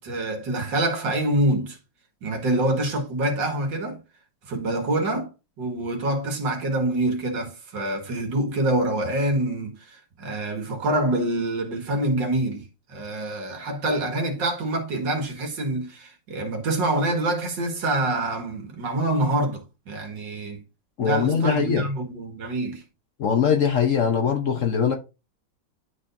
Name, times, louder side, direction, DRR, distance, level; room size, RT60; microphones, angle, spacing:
voice 1, 0.0-1.8 2.2-4.0 4.5-5.3 5.6-20.6 21.0-22.8, right 1 dB, 75° right, 2.4 m, -26 dB
voice 2, 21.0-21.9 23.2-24.9, left 7 dB, 55° left, 1.0 m, -21 dB
11.0 x 4.3 x 2.6 m
omnidirectional pair, 2.0 m